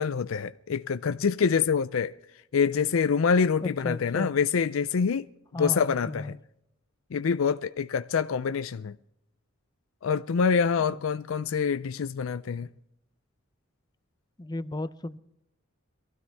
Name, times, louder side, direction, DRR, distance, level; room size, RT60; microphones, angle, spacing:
voice 1, 0.0-2.1 2.5-5.3 5.6-6.3 7.1-8.9 10.0-12.7, left 6 dB, 75° left, 0.5 m, -26 dB
voice 2, 3.6-4.3 5.5-6.4 10.8-11.0 14.4-15.2, left 2 dB, 20° left, 0.6 m, -35 dB
23.5 x 15.5 x 3.5 m
head